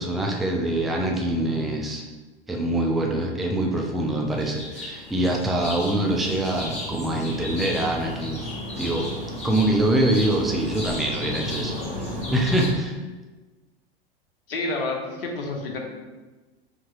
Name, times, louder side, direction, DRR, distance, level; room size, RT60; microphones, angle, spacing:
voice 1, 0.0-2.0 2.5-8.4 8.8-9.1 9.4-13.0, right 1 dB, ahead, 0 dB, 0.3 m, -24 dB
sound 1, 4.4-12.7, left 1 dB, 20° left, 1.2 m, -34 dB
voice 2, 14.5-15.8, left 2 dB, 70° left, 1 dB, 0.9 m, -29 dB
4.8 x 2.8 x 2.9 m, 1.2 s
figure-of-eight pair, 85°, 30 cm